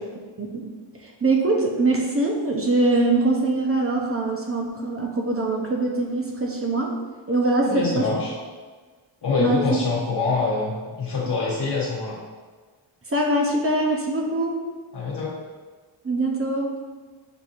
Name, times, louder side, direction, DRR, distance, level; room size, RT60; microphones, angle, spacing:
voice 1, 0.4-0.7 1.0-6.9 7.3-8.0 9.4-9.6 13.1-14.6 16.0-16.7, right 2 dB, 30° right, -1 dB, 0.7 m, -23 dB
voice 2, 7.6-8.3 9.2-12.2 14.9-15.3, left 4 dB, 55° left, -6 dB, 1.0 m, -25 dB
6.6 x 2.7 x 2.5 m, 1.4 s
cardioid pair, 65°, 49 cm